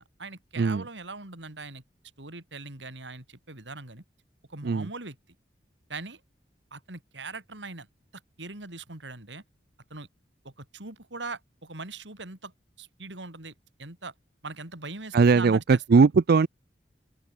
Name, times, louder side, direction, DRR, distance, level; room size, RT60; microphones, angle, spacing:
voice 1, 0.0-1.8 2.2-4.0 4.5-5.2 5.9-6.2 6.7-7.9 8.1-9.4 9.9-10.1 10.4-12.5 12.8-13.5 13.8-14.1 14.4-16.0, right 3 dB, 80° right, 4.0 m, -41 dB
voice 2, 15.1-16.5, right 4 dB, 60° right, 0.4 m, -20 dB
open air
head